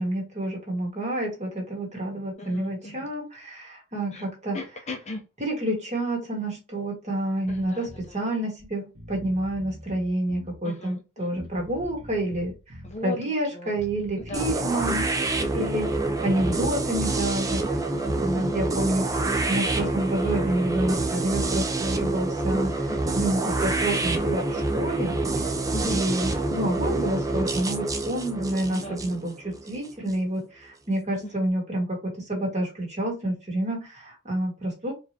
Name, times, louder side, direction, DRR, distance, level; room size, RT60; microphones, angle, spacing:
voice 1, 0.0-4.6 5.4-12.5 13.0-15.0 15.5-15.9 16.2-17.8 18.2-19.1 19.5-25.2 25.4-25.5 25.9-34.9, right 1 dB, 30° right, 1.8 m, -28 dB
voice 2, 2.4-3.1 4.1-4.2 4.5-5.3 7.5-8.2 10.6-11.5 12.8-13.2 13.5-13.8 14.2-15.7 17.9-18.6 22.9-23.7 25.7-26.0 28.7-29.2 31.2-31.3, left 1 dB, 30° left, 0.7 m, -38 dB
Bass guitar, 7.4-8.1 8.6-8.7 8.9-10.6 11.4-13.0 13.7-14.9 15.2-17.0, equal, 70° right, 1.7 m, -44 dB
sound 1, 14.3-30.2, right 2 dB, 15° right, 0.5 m, -27 dB
4.3 x 3.3 x 2.8 m
head